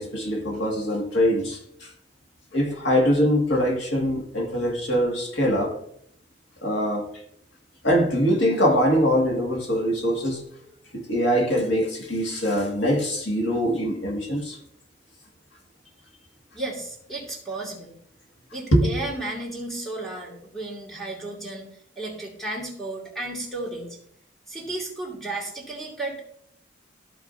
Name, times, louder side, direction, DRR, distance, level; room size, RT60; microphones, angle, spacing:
voice 1, 0.0-1.9 2.5-5.8 6.6-7.1 7.8-10.4 10.9-14.6 18.7-18.9, equal, 85° left, 1.9 m, -23 dB
voice 2, 16.5-18.0 18.5-21.7 22.0-24.0 24.5-26.3, right 2 dB, ahead, 2.2 m, -33 dB
14.5 x 4.8 x 2.6 m
head